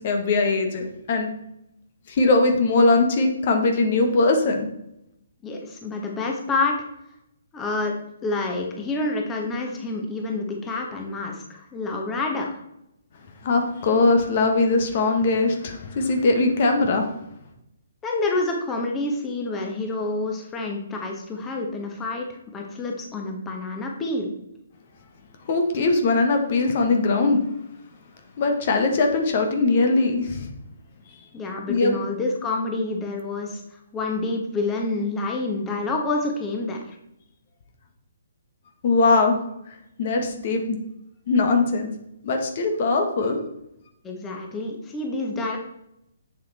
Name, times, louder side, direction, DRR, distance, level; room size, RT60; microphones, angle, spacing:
voice 1, 0.0-1.3 2.1-4.7 13.4-17.1 25.5-27.4 28.4-30.5 31.7-31.9 38.8-39.4 39.7-40.8 41.3-41.9 42.2-43.4, left 3 dB, 50° left, 4 dB, 1.6 m, -21 dB
voice 2, 5.4-6.7 7.5-7.9 8.2-12.5 18.0-24.3 31.3-33.6 33.9-37.0 44.0-45.6, left 2 dB, 15° left, 1 dB, 1.4 m, -28 dB
7.4 x 7.2 x 4.3 m, 0.83 s
hypercardioid pair, 140°, 0 cm